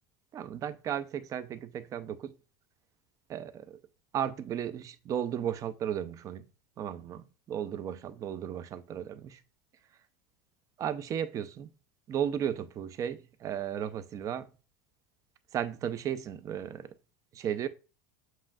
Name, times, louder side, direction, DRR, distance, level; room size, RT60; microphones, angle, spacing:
voice 1, 0.3-2.3 3.3-3.8 4.1-6.4 6.8-9.4 10.8-11.7 12.1-14.5 15.5-16.9 17.3-17.7, right 9 dB, 30° right, 0.4 m, -35 dB
7.4 x 2.6 x 2.3 m
supercardioid pair, 120°, 11 cm